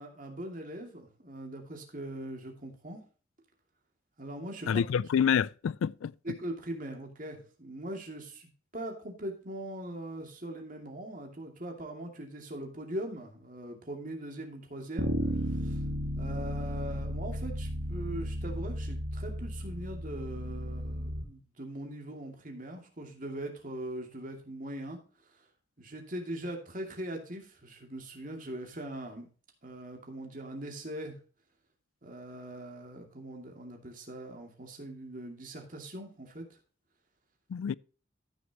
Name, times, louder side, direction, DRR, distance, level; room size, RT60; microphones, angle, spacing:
voice 1, 0.0-3.0 4.2-4.8 6.2-15.1 15.5-15.8 16.2-25.0 25.8-29.3 29.6-31.2 32.0-36.6, right 1 dB, 40° right, 2.5 m, -41 dB
voice 2, 4.7-6.1 37.5-37.7, left 7 dB, 80° left, 0.3 m, -27 dB
Bass guitar, 15.0-21.2, equal, 65° right, 1.6 m, -34 dB
14.5 x 6.6 x 2.9 m
head